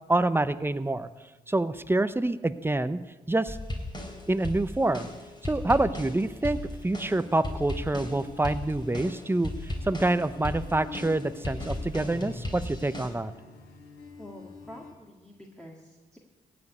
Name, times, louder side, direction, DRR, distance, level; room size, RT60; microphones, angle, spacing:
voice 1, 0.1-1.1 1.5-3.0 3.3-3.6 4.3-5.1 5.5-6.6 6.8-9.5 9.8-13.3, right 2 dB, 15° right, 14 dB, 0.7 m, -26 dB
sound 1, 3.5-13.1, left 1 dB, 25° left, 3.6 m, -36 dB
sound 2, 6.5-14.9, left 4 dB, 90° left, 1.9 m, -47 dB
voice 2, 14.2-16.2, left 1 dB, 5° left, -1 dB, 1.8 m, -47 dB
15.5 x 5.2 x 9.5 m, 1.2 s
supercardioid pair, 55°, 17 cm